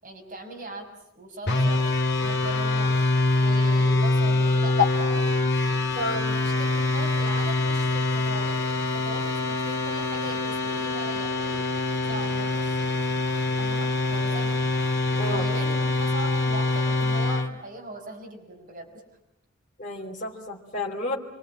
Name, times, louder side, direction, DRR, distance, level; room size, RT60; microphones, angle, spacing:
voice 1, 0.0-0.9 1.1-1.8 2.2-2.9 3.3-5.2 6.2-12.9 13.6-14.5 15.3-19.0, right 2 dB, 40° right, 0 dB, 6.6 m, -40 dB
sound 1, 1.5-17.5, left 2 dB, 55° left, 2.2 m, -24 dB
voice 2, 6.0-6.3 15.2-15.4 19.8-21.2, left 4 dB, 40° left, -2 dB, 3.6 m, -28 dB
27.0 x 24.5 x 8.7 m, 0.80 s
head